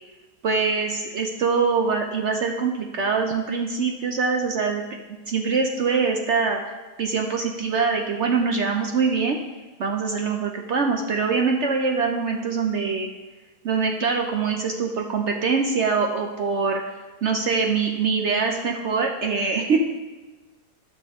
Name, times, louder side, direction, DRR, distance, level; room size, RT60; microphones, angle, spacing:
voice 1, 0.4-4.8 5.3-9.4 9.8-13.1 13.6-16.8 17.2-19.8, right 5 dB, 65° right, 2 dB, 0.7 m, -23 dB
10.5 x 6.3 x 3.6 m, 1.2 s
omnidirectional pair, 1.8 m